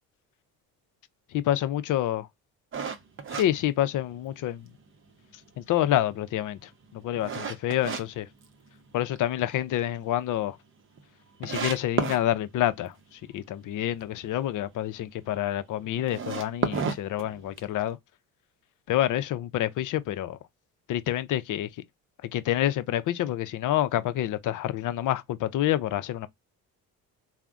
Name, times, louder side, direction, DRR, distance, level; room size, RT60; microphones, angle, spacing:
voice 1, 1.3-2.3 3.4-4.7 5.6-8.3 8.9-10.6 11.4-18.0 18.9-20.4 20.9-21.7 22.3-26.3, left 12 dB, 55° left, 0.5 m, -28 dB
sound 1, 2.7-4.4 4.9-5.0 5.5-8.0 8.4-9.2 9.5-9.6 10.0-10.1 10.2-10.3 11.0-11.1 11.4-12.2 16.0-17.8, right 5 dB, 35° right, 0.6 m, -32 dB
3.3 x 2.1 x 2.4 m
cardioid pair, 85°, 37 cm